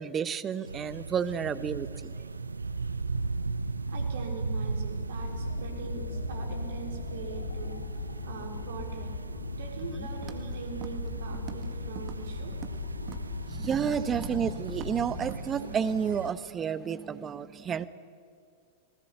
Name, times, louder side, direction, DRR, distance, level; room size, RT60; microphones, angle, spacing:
voice 1, 0.0-2.2 9.9-10.1 13.5-17.9, right 7 dB, 25° right, 15 dB, 1.1 m, -31 dB
sound 1, 0.6-16.3, right 3 dB, 85° right, 0.7 m, -37 dB
voice 2, 3.9-7.8 8.2-9.2 9.5-12.5, right 4 dB, 65° right, 4 dB, 4.3 m, -42 dB
sound 2, 5.2-15.3, left 5 dB, 70° left, 1.9 m, -39 dB
Walk footsteps, 10.2-10.5 10.8-11.1 11.3-11.7 12.0-12.8 13.1-13.3 13.6-13.9 14.2-14.4 14.7-14.9 15.3-15.4, right 11 dB, 40° right, 1.9 m, -43 dB
27.5 x 19.5 x 8.5 m, 2.2 s
figure-of-eight pair, 95°, 0 cm